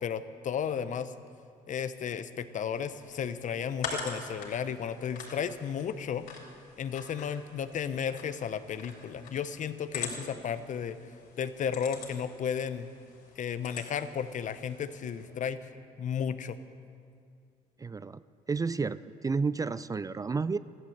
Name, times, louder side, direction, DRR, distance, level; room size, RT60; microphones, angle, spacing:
voice 1, 0.0-1.1 1.7-6.3 6.8-11.0 11.4-12.9 13.4-15.6 16.0-16.6, left 7 dB, 55° left, 12 dB, 0.9 m, -33 dB
sound 1, 2.7-15.3, left 5 dB, 75° left, 3.9 m, -44 dB
voice 2, 17.8-18.2 18.5-20.6, right 4 dB, 20° right, 15 dB, 0.4 m, -31 dB
14.5 x 12.5 x 7.9 m, 2.3 s
supercardioid pair, 80°, 16 cm